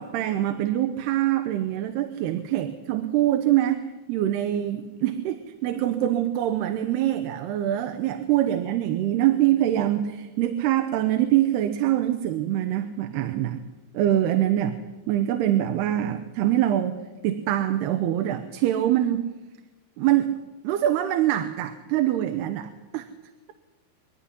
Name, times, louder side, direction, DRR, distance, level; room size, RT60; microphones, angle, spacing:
voice 1, 0.0-13.6 13.9-14.8 15.1-19.2 20.0-20.4 20.6-23.1, right 12 dB, 80° right, 8 dB, 3.0 m, -24 dB
24.5 x 11.5 x 10.0 m, 1.1 s
omnidirectional pair, 4.7 m